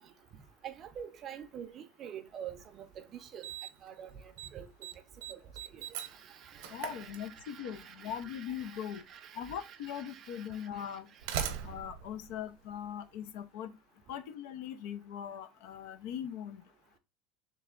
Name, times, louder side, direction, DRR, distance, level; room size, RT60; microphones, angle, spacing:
voice 1, 0.6-3.5 3.8-4.9 5.3-5.4 5.7-11.0 11.3-11.6, right 9 dB, 30° right, 0.5 m, -47 dB
Slam, 2.6-2.7 3.4-3.9 4.2-4.5 4.8-7.7 8.9-9.0 9.8-9.9 10.9-13.2, right 9 dB, 85° right, 0.7 m, -40 dB
voice 2, 6.7-9.0 9.3-11.1 11.6-13.7 14.1-16.6, left 9 dB, 65° left, 0.5 m, -40 dB
3.3 x 3.2 x 3.7 m
cardioid pair, 165°, 0 cm